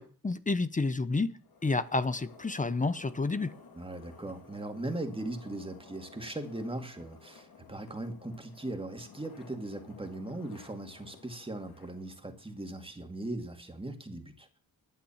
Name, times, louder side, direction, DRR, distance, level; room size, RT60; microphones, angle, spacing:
voice 1, 0.0-3.6, left 3 dB, 20° left, 0.8 m, -30 dB
sound 1, 1.4-12.9, left 5 dB, 75° left, 2.9 m, -55 dB
voice 2, 3.8-14.5, right 1 dB, 15° right, 2.2 m, -39 dB
12.0 x 9.1 x 7.3 m
cardioid pair, 105°, 36 cm